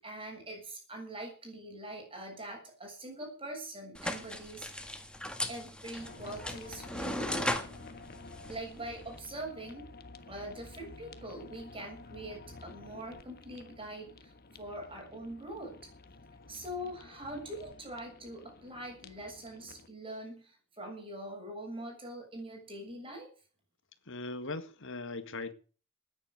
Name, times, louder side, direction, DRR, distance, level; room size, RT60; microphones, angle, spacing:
voice 1, 0.0-4.7 5.5-7.6 8.5-9.9 10.3-15.7 16.5-23.3, right 1 dB, 25° right, 7.2 m, -43 dB
sound 1, 3.9-9.2, left 1 dB, 5° left, 1.8 m, -38 dB
sound 2, 5.9-19.9, left 3 dB, 45° left, 1.4 m, -51 dB
voice 2, 24.1-25.5, left 3 dB, 60° left, 1.9 m, -39 dB
14.0 x 10.0 x 7.8 m
head